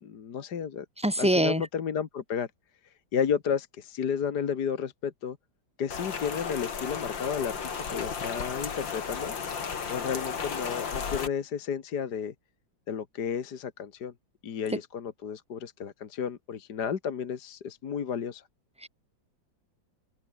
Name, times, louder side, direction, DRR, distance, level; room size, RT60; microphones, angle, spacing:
voice 1, 0.0-0.9 1.2-2.5 3.1-5.4 5.8-9.3 9.9-12.3 12.9-14.1 14.4-18.4, left 7 dB, 60° left, 2.0 m, -32 dB
voice 2, 1.0-1.7 18.8-18.9, right 1 dB, 5° right, 2.3 m, -24 dB
Rain, 5.9-11.3, left 6 dB, 75° left, 3.0 m, -34 dB
open air
omnidirectional pair, 2.1 m